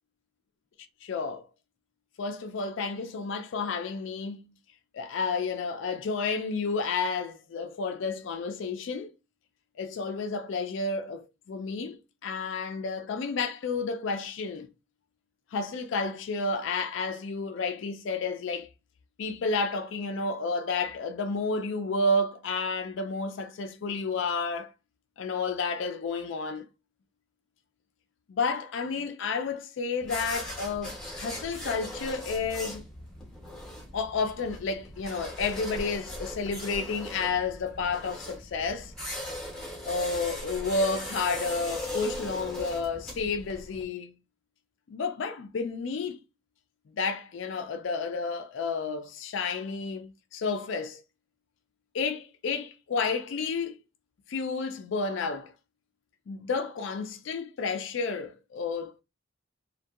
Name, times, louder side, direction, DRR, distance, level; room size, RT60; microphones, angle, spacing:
voice 1, 1.0-1.5 2.2-4.5 4.9-9.1 9.8-14.7 15.5-18.7 19.2-24.7 25.2-26.6 28.3-32.8 33.9-38.9 39.8-44.1 44.9-46.2 46.9-51.0 51.9-53.8 54.3-55.5 56.3-59.0, left 4 dB, 65° left, 0.3 m, -31 dB
sound 1, 30.0-43.8, left 1 dB, 5° left, 0.6 m, -39 dB
2.6 x 2.2 x 2.3 m
head